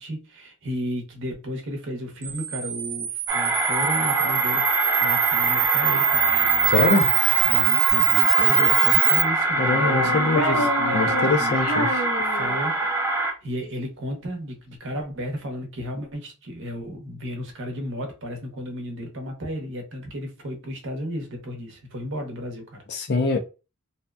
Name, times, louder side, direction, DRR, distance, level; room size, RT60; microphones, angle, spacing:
voice 1, 0.0-4.7 5.0-6.8 7.4-11.6 12.2-22.8, equal, 60° right, 0.8 m, -34 dB
Camera, 2.2-9.2, right 10 dB, 85° right, 0.4 m, -23 dB
sound 1, 3.3-13.3, right 2 dB, 10° right, 0.5 m, -24 dB
Child speech kid speaking, 5.9-7.6 8.3-9.2 9.7-12.8, left 1 dB, 80° left, 0.7 m, -30 dB
voice 2, 6.7-7.1 9.6-10.6 10.9-11.9 22.9-23.4, left 3 dB, 50° left, 0.5 m, -23 dB
2.7 x 2.2 x 2.2 m
head